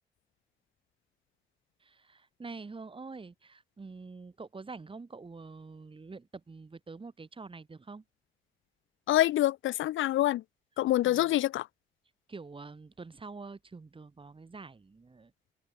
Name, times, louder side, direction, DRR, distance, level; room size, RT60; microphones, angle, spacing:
voice 1, 1.8-8.0 11.0-11.3 12.3-15.3, right 4 dB, 25° right, 3.4 m, -46 dB
voice 2, 9.1-10.4 10.8-11.7, left 14 dB, 80° left, 0.7 m, -26 dB
open air
cardioid pair, 100°, 20 cm